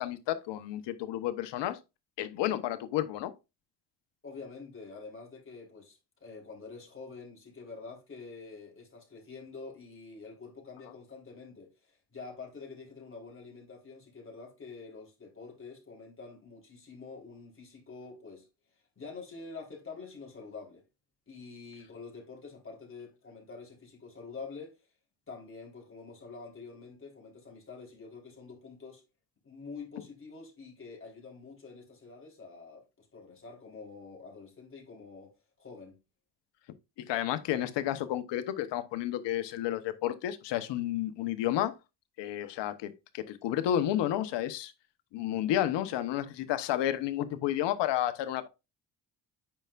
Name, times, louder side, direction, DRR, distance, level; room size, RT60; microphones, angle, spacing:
voice 1, 0.0-1.8 2.2-3.3 37.0-41.7 42.2-44.7 45.1-48.5, left 12 dB, 80° left, 1.1 m, -31 dB
voice 2, 4.2-18.5 19.0-20.8 21.3-24.8 25.3-29.0 29.4-36.0, left 4 dB, 30° left, 3.9 m, -47 dB
8.8 x 5.7 x 2.5 m
cardioid pair, 80°, 42 cm